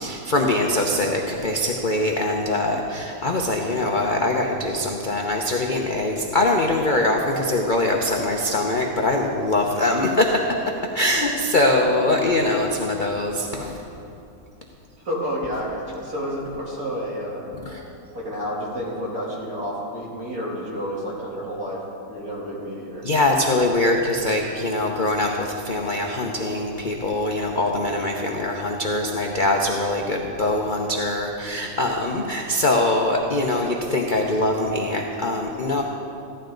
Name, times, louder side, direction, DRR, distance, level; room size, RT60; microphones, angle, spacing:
voice 1, 0.0-10.3 10.9-13.8 17.6-17.9 23.0-35.8, left 2 dB, 50° left, 0 dB, 0.6 m, -23 dB
voice 2, 15.0-17.6 18.1-23.0, equal, 50° right, -6 dB, 3.3 m, -30 dB
15.5 x 12.0 x 3.9 m, 2.8 s
omnidirectional pair, 2.0 m